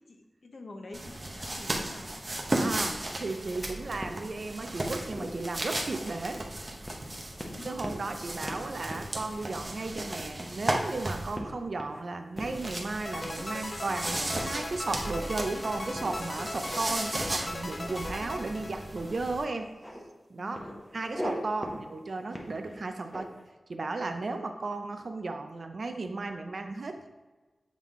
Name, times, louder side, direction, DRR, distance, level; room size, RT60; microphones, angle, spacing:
voice 1, 0.0-2.1 7.4-7.8 20.4-20.9, left 2 dB, 60° left, 3 dB, 0.8 m, -46 dB
sound 1, 0.9-11.4 12.4-19.4, right 1 dB, 30° right, 0.8 m, -36 dB
voice 2, 2.5-6.4 7.6-19.7 20.3-20.6 20.9-23.3 23.7-27.1, right 3 dB, 60° right, 6 dB, 0.6 m, -35 dB
sound 2, 4.0-4.7 5.1-6.4 6.9-7.1 7.4-8.2 8.5-8.6 8.9-9.1 9.5-9.6 10.2-10.9 11.3-12.0 12.4-12.6 13.2-13.7 14.1-15.2 15.9-16.9 17.1-18.0 19.0-19.2 19.5-20.0 20.5-21.3 21.6-21.8 22.3-23.4, equal, 10° left, 0.9 m, -41 dB
sound 3, 13.0-19.3, left 2 dB, 35° left, 0.5 m, -39 dB
7.4 x 3.6 x 3.7 m, 1.2 s
wide cardioid pair, 95°, 0 cm